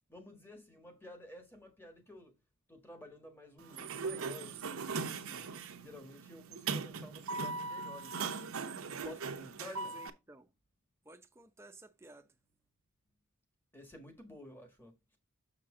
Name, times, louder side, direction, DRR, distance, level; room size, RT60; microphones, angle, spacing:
voice 1, 0.1-2.3 2.7-5.5 5.8-8.3 8.9-10.0 13.7-14.9, left 1 dB, 10° left, 1.5 m, -52 dB
Sliding door, 3.6-10.1, right 4 dB, 85° right, 0.8 m, -39 dB
voice 2, 9.6-10.4 11.1-12.3, right 2 dB, 10° right, 0.7 m, -54 dB
6.7 x 5.9 x 3.7 m
head